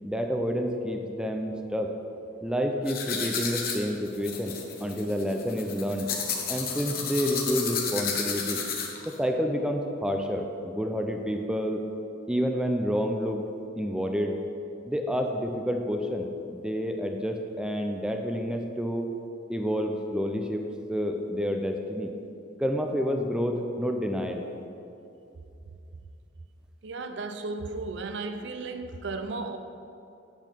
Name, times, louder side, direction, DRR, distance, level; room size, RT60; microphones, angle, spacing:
voice 1, 0.0-1.9 2.4-6.1 6.5-8.6 9.0-11.8 12.3-13.4 13.8-14.4 14.9-19.1 19.5-22.1 22.6-24.5, equal, 5° right, 3 dB, 0.4 m, -29 dB
sound 1, 2.9-9.1, left 6 dB, 50° left, 1.0 m, -32 dB
voice 2, 26.8-29.6, right 3 dB, 60° right, 7 dB, 0.5 m, -34 dB
9.0 x 3.9 x 6.7 m, 2.7 s
head